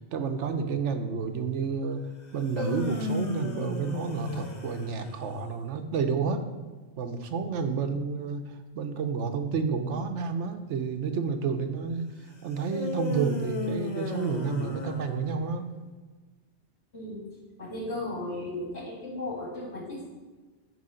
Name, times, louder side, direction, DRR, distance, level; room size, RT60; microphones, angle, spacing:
voice 1, 0.1-2.0 2.3-6.5 7.0-12.1 12.4-15.7, right 5 dB, 80° right, 7 dB, 1.1 m, -30 dB
sound 1, 2.3-5.5 12.7-15.6, left 2 dB, 40° left, 0.9 m, -34 dB
voice 2, 16.9-17.3 17.6-20.1, left 1 dB, 65° left, -5 dB, 2.5 m, -35 dB
9.7 x 3.4 x 5.0 m, 1.3 s
omnidirectional pair, 1.2 m